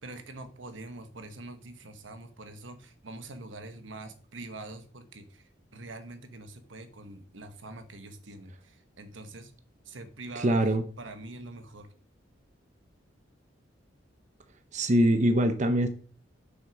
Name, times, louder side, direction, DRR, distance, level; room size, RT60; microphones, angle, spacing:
voice 1, 0.0-9.5 9.8-10.6 11.0-11.9, right 2 dB, 90° right, 9 dB, 1.1 m, -44 dB
voice 2, 10.4-10.8 14.7-15.9, right 1 dB, 40° right, 9 dB, 0.7 m, -23 dB
6.3 x 6.1 x 5.0 m, 0.41 s
head